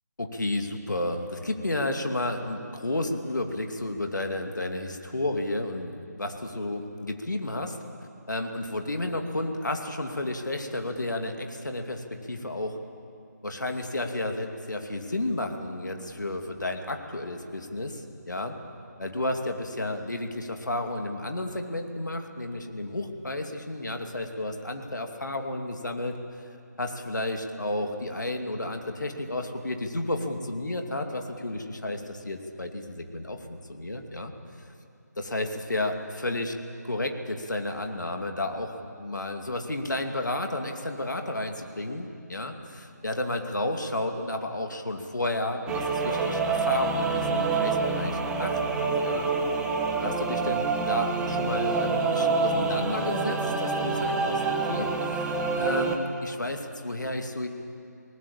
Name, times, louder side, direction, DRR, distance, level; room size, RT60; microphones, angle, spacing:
voice 1, 0.2-7.8 8.3-12.8 13.4-18.6 19.0-26.4 26.8-34.3 35.2-36.5 36.9-49.3 50.0-55.3 55.6-57.5, left 1 dB, 80° left, 5 dB, 2.4 m, -32 dB
sound 1, 45.7-56.0, right 4 dB, 5° right, 1.0 m, -27 dB
22.5 x 19.0 x 8.7 m, 2.6 s
figure-of-eight pair, 155°, 10 cm